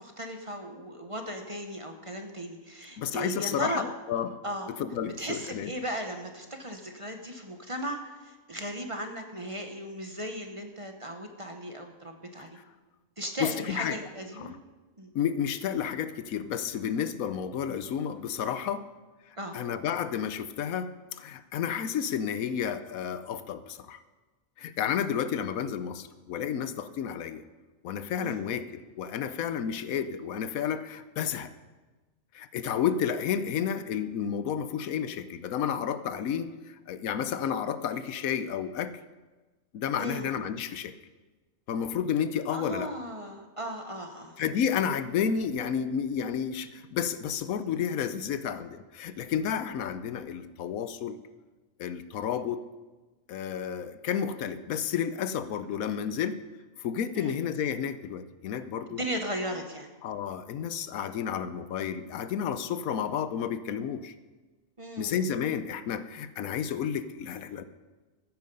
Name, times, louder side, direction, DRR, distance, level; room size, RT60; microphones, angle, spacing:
voice 1, 0.0-3.8 4.4-4.7 5.2-12.6 13.2-14.5 15.0-15.1 19.4-19.6 28.2-28.4 40.0-40.3 42.5-44.4 57.1-57.4 58.9-59.9 64.8-65.4, right 1 dB, 25° right, 4 dB, 1.0 m, -36 dB
voice 2, 3.0-4.4 4.7-5.7 13.4-14.0 14.4-14.6 15.1-18.9 19.5-24.0 24.6-27.4 27.8-31.5 32.3-38.9 39.7-40.9 41.7-42.9 44.4-51.2 51.8-52.6 53.3-56.4 56.8-59.0 60.0-64.1 65.0-67.6, left 8 dB, 85° left, 12 dB, 1.2 m, -31 dB
15.0 x 9.5 x 5.4 m, 1.3 s
omnidirectional pair, 1.4 m